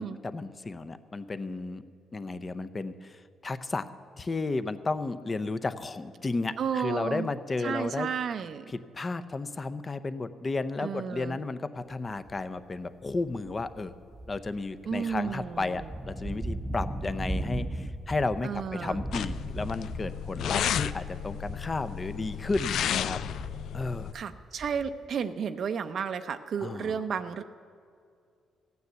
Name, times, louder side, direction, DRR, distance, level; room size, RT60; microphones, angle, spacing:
voice 1, 0.0-1.8 2.1-3.9 4.2-8.1 8.7-13.9 14.3-23.2 23.7-24.1 26.6-27.0, left 3 dB, 30° left, 12 dB, 0.7 m, -33 dB
voice 2, 6.6-7.3 7.6-8.7 10.8-11.4 14.9-15.9 18.4-19.0 24.1-27.4, right 7 dB, 60° right, 9 dB, 0.6 m, -32 dB
sound 1, 12.3-12.6 13.0-21.9 22.2-25.1, right 1 dB, 15° right, 0.8 m, -38 dB
sound 2, 19.1-24.1, left 9 dB, 75° left, 0.4 m, -33 dB
15.0 x 9.4 x 8.0 m, 2.3 s
cardioid pair, 90°, 0 cm